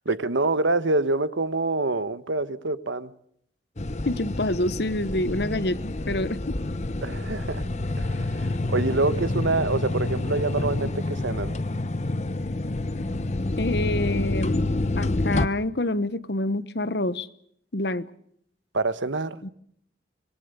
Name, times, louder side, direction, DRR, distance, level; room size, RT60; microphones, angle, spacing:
voice 1, 0.0-3.1 7.0-7.6 8.0-11.6 18.7-19.4, right 2 dB, 85° right, 14 dB, 1.2 m, -26 dB
sound 1, 3.8-15.5, left 2 dB, 35° left, 0.9 m, -28 dB
voice 2, 4.0-6.6 13.6-14.6 15.0-17.3 17.7-18.1 19.4-19.5, left 1 dB, 60° left, 15 dB, 1.1 m, -27 dB
25.5 x 20.5 x 6.8 m, 0.68 s
head